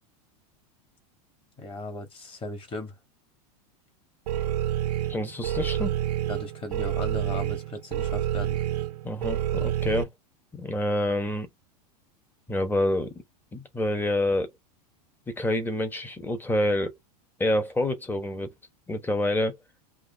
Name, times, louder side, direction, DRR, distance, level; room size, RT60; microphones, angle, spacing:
voice 1, 1.6-2.9 6.3-8.6, left 2 dB, 25° left, 2.3 m, -37 dB
sound 1, 4.3-10.0, right 11 dB, 90° right, 1.0 m, -28 dB
voice 2, 5.1-6.0 9.0-10.1 10.5-11.5 12.5-13.1 13.5-14.5 15.3-16.9 17.4-18.5 18.9-19.6, left 1 dB, 10° left, 1.3 m, -27 dB
4.9 x 2.6 x 3.5 m
supercardioid pair, 120°, 20 cm